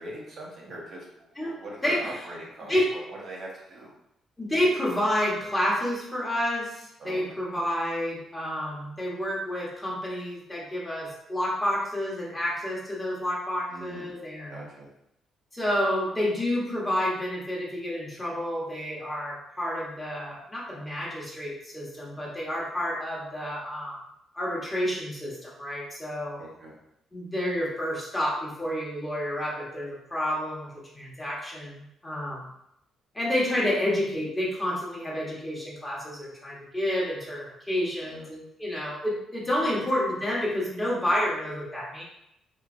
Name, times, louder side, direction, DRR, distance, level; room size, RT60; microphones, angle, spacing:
voice 1, 0.0-3.9 7.0-7.4 13.7-14.1 14.5-14.9 26.4-26.7 38.0-38.3 39.6-39.8, right 1 dB, 60° right, -3 dB, 0.9 m, -42 dB
voice 2, 1.8-2.2 2.7-2.9 4.4-14.6 15.5-24.0 24.3-26.4 27.1-32.5 33.1-42.0, left 1 dB, 15° left, -5 dB, 1.1 m, -29 dB
3.1 x 2.8 x 2.6 m, 0.78 s
cardioid pair, 90°, 0 cm